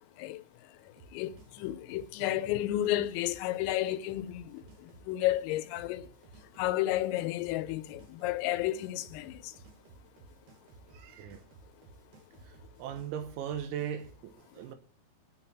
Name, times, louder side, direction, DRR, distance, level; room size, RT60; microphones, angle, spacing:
sound 1, 1.0-14.2, right 4 dB, 60° right, 3.6 m, -56 dB
voice 1, 1.1-6.1 6.6-9.5, left 14 dB, 85° left, 3.4 m, -32 dB
voice 2, 10.9-11.4 12.4-14.8, right 9 dB, 85° right, 4.0 m, -39 dB
26.0 x 9.9 x 2.9 m
omnidirectional pair, 5.9 m